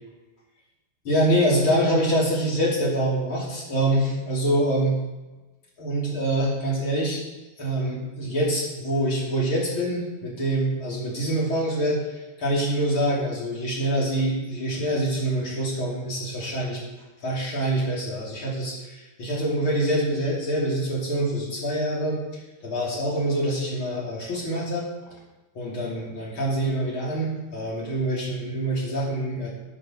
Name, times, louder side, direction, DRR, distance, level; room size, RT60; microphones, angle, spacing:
voice 1, 1.0-5.0 5.8-7.2 7.6-16.8 17.2-22.2 22.6-24.9 25.5-29.5, right 1 dB, 35° left, -5 dB, 2.5 m, -25 dB
12.0 x 6.4 x 6.3 m, 1.1 s
omnidirectional pair, 5.9 m